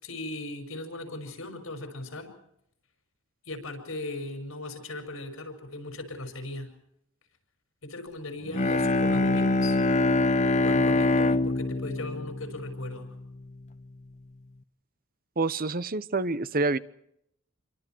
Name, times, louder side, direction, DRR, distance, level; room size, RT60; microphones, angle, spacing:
voice 1, 0.0-2.3 3.4-6.7 7.8-9.8 10.6-13.1, left 2 dB, 85° left, 6 dB, 5.8 m, -38 dB
Bowed string instrument, 8.5-13.4, left 2 dB, 35° left, 0.9 m, -25 dB
voice 2, 15.4-16.8, right 3 dB, 45° right, 15 dB, 1.0 m, -27 dB
28.5 x 24.0 x 4.6 m, 0.75 s
head